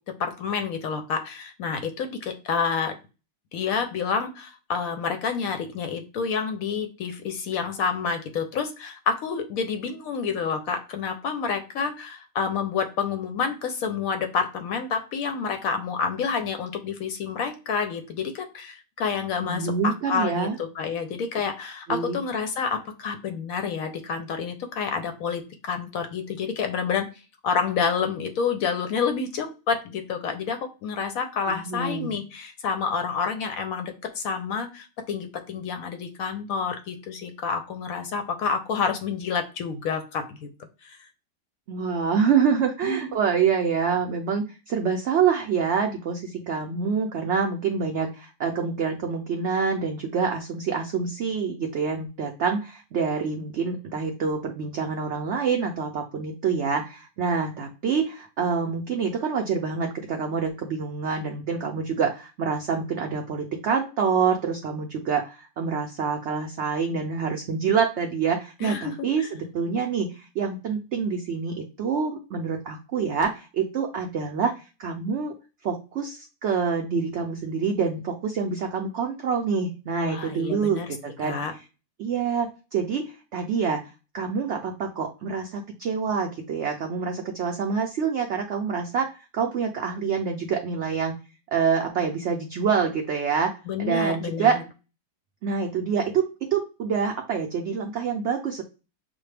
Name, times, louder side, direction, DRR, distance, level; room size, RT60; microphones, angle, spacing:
voice 1, 0.2-2.9 3.5-27.1 27.4-40.5 40.8-41.1 42.8-43.1 68.6-69.3 80.0-81.0 81.2-81.5 93.7-94.6, left 6 dB, 70° left, 6 dB, 0.9 m, -29 dB
voice 2, 19.4-20.6 21.9-22.2 31.5-32.2 41.7-75.3 75.6-81.5 82.0-83.8 84.1-91.1 91.5-94.6 95.4-96.2 96.5-98.6, right 6 dB, 90° right, 3 dB, 0.6 m, -26 dB
6.1 x 2.1 x 3.2 m, 0.31 s
omnidirectional pair, 1.8 m